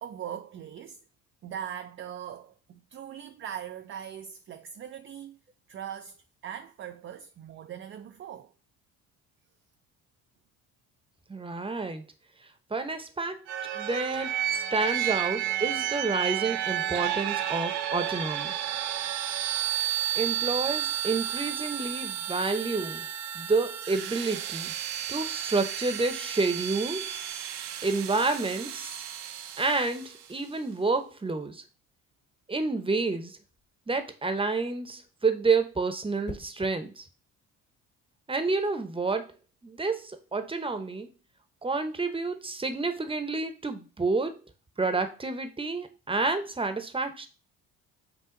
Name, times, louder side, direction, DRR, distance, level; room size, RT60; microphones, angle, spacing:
voice 1, 0.0-1.0 1.4-5.4 5.7-8.5, right 9 dB, 35° right, 0.4 m, -40 dB
voice 2, 11.3-12.0 12.7-13.4 13.7-18.6 20.1-23.1 23.3-24.7 25.1-27.2 27.8-29.0 29.6-31.6 32.5-33.4 33.9-37.1 38.3-39.3 39.6-41.1 41.6-44.4 44.8-47.3, right 3 dB, 15° right, 0.8 m, -29 dB
sound 1, 13.5-30.2, right 11 dB, 75° right, 0.7 m, -32 dB
sound 2, 33.4-33.8 36.2-36.8 38.8-39.0, left 2 dB, 25° left, 1.0 m, -44 dB
5.8 x 2.4 x 3.7 m
hypercardioid pair, 60°, 41 cm